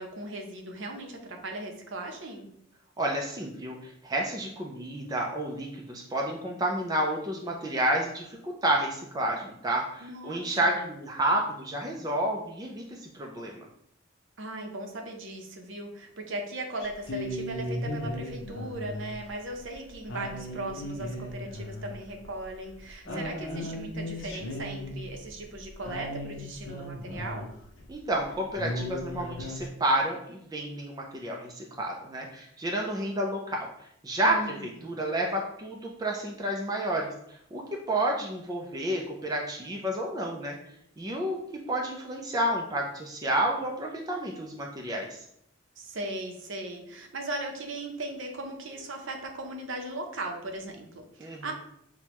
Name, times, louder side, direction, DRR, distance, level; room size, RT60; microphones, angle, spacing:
voice 1, 0.0-2.5 10.0-10.9 14.4-27.5 34.2-34.9 45.8-51.5, right 2 dB, 65° right, 3 dB, 0.7 m, -38 dB
voice 2, 3.0-13.7 23.1-23.7 27.9-33.7 34.0-40.6 41.0-41.4 41.7-45.2 51.2-51.5, right 1 dB, 20° right, 0 dB, 0.4 m, -30 dB
sound 1, 16.8-27.8 28.2-28.3 28.6-29.7, left 1 dB, 60° left, 0.7 m, -36 dB
6.0 x 2.2 x 2.9 m, 0.72 s
head